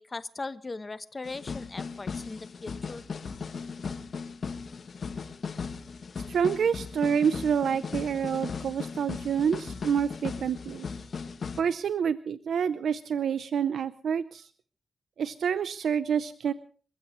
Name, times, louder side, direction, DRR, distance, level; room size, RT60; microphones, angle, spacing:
voice 1, 0.0-3.0, left 3 dB, 30° left, 13 dB, 1.0 m, -39 dB
sound 1, 1.2-11.6, left 5 dB, 55° left, 1.3 m, -37 dB
voice 2, 6.3-10.9 11.6-14.5 15.2-16.5, right 7 dB, 85° right, 13 dB, 0.7 m, -28 dB
28.5 x 15.5 x 3.2 m, 0.42 s
wide cardioid pair, 125°, 0 cm